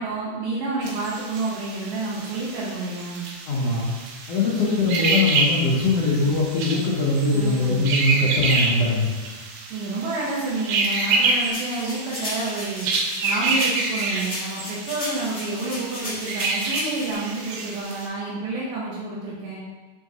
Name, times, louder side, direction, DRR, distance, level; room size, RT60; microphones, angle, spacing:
voice 1, 0.0-3.3 7.3-7.9 9.7-12.9 13.2-19.6, right 2 dB, 70° right, -7 dB, 2.6 m, -29 dB
sound 1, 0.8-18.1, right 3 dB, 90° right, 2.7 m, -28 dB
voice 2, 3.5-3.9 4.3-9.1, left 2 dB, 85° left, -6 dB, 1.4 m, -21 dB
sound 2, 11.5-17.1, left 1 dB, 65° left, 0.6 m, -34 dB
6.4 x 3.7 x 4.1 m, 1.3 s
omnidirectional pair, 4.3 m